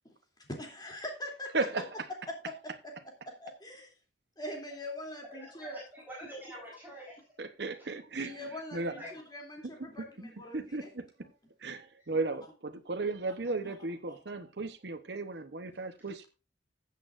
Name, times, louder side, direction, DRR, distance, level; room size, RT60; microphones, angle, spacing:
voice 1, 0.5-1.8 2.5-2.7 3.4-3.9 4.4-5.8 8.2-10.9 13.6-13.7 14.1-14.2, left 1 dB, 25° left, 2.9 m, -42 dB
voice 2, 1.5-1.9 7.4-8.4 8.7-9.0 10.5-11.3 11.6-16.2, right 3 dB, 65° right, 0.9 m, -35 dB
voice 3, 5.4-7.2 8.9-9.1, equal, 10° right, 4.2 m, -46 dB
15.0 x 8.5 x 2.5 m
head